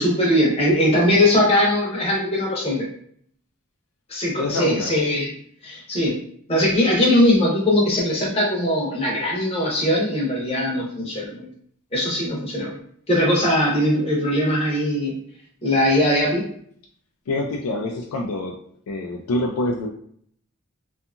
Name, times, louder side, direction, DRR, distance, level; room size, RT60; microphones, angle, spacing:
voice 1, 0.0-2.9 4.1-5.3 5.6-6.2 6.5-11.5 11.9-12.8 13.1-15.1 15.6-16.4, left 1 dB, 25° left, -3 dB, 0.7 m, -20 dB
voice 2, 4.4-5.0 17.3-18.6 18.9-19.9, left 2 dB, 85° left, 2 dB, 0.3 m, -26 dB
2.7 x 2.3 x 2.4 m, 0.62 s
head